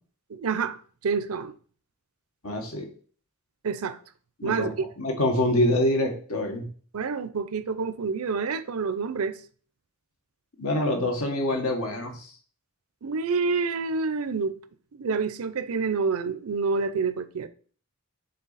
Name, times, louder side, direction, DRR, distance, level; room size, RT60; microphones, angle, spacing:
voice 1, 0.3-1.5 3.6-4.0 4.4-4.9 6.9-9.4 13.0-14.6 14.9-17.5, right 4 dB, 85° right, 0.6 m, -28 dB
voice 2, 2.4-2.9 4.4-4.7 5.0-6.6 10.6-12.3, left 1 dB, 80° left, 1.5 m, -25 dB
6.5 x 4.1 x 4.1 m
head